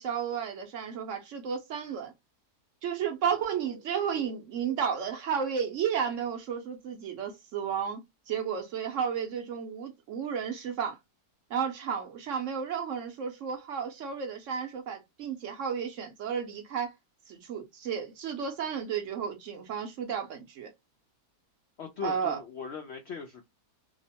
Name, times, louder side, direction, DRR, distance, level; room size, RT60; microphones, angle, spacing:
voice 1, 0.0-2.1 2.8-8.0 8.3-11.0 11.5-16.9 17.3-20.7 22.0-22.4, right 7 dB, 65° right, 0.8 m, -32 dB
voice 2, 21.8-23.4, left 6 dB, 80° left, 0.6 m, -39 dB
2.8 x 2.0 x 2.7 m
omnidirectional pair, 1.8 m